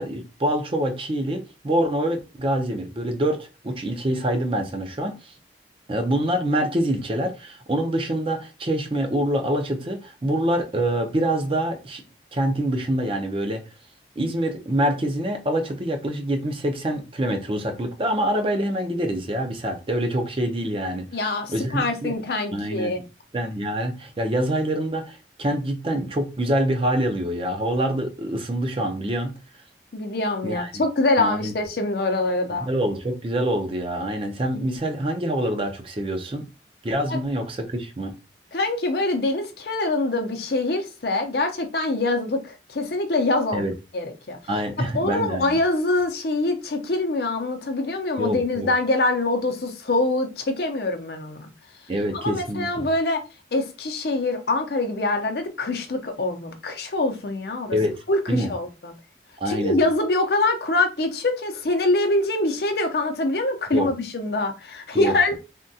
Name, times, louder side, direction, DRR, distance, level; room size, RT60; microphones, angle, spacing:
voice 1, 0.0-5.3 5.9-12.0 12.3-13.6 14.2-22.1 22.5-23.0 23.3-29.3 30.4-30.8 31.2-31.5 32.5-36.5 36.8-38.1 43.5-43.7 44.5-45.6 48.2-48.7 51.9-52.9 57.7-58.0 58.3-58.5 59.4-59.8 63.7-63.9 64.9-65.4, right 1 dB, 30° right, 0.5 m, -25 dB
voice 2, 21.1-23.0 29.9-32.7 37.1-37.2 38.5-43.7 43.9-44.4 44.8-51.5 52.1-53.2 53.5-57.8 58.1-58.9 59.5-65.4, left 2 dB, 60° left, 0.6 m, -24 dB
3.5 x 2.2 x 2.7 m
head